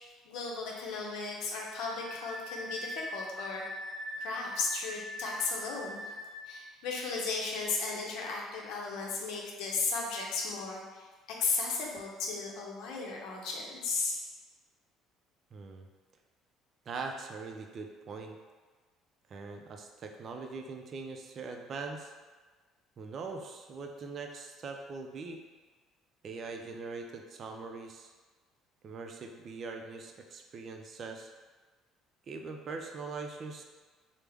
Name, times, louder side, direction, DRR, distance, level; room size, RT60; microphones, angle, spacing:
voice 1, 0.2-3.6 4.2-6.2 6.4-14.1, left 4 dB, 75° left, -2 dB, 0.6 m, -35 dB
Wind instrument woodwind instrument, 1.7-6.5, left 1 dB, 35° left, 1.1 m, -42 dB
voice 2, 15.5-15.9 16.9-18.4 19.3-22.1 23.0-25.4 26.2-28.1 28.8-31.3 32.3-33.6, right 4 dB, 50° right, 3 dB, 0.4 m, -42 dB
3.3 x 2.0 x 3.4 m, 1.3 s
supercardioid pair, 80°, 0 cm